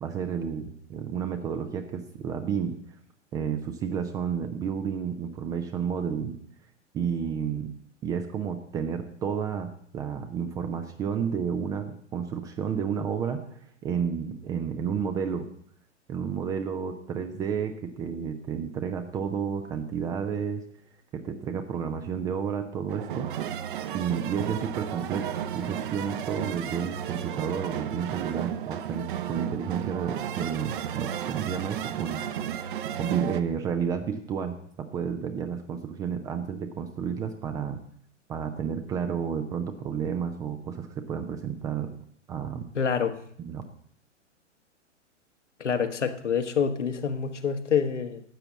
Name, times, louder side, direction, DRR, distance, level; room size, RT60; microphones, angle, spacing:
voice 1, 0.0-2.8 3.3-6.4 6.9-7.7 8.0-13.4 13.8-15.5 16.1-20.6 21.1-23.3 23.9-32.2 33.0-37.8 38.3-41.9 42.3-42.7 43.4-43.6, right 7 dB, 10° right, 7 dB, 0.4 m, -31 dB
sound 1, 22.9-33.4, right 10 dB, 45° right, 0.9 m, -33 dB
voice 2, 42.7-43.2 45.6-48.2, left 7 dB, 75° left, 7 dB, 1.4 m, -27 dB
12.5 x 7.9 x 7.1 m, 0.65 s
figure-of-eight pair, 110°, 36 cm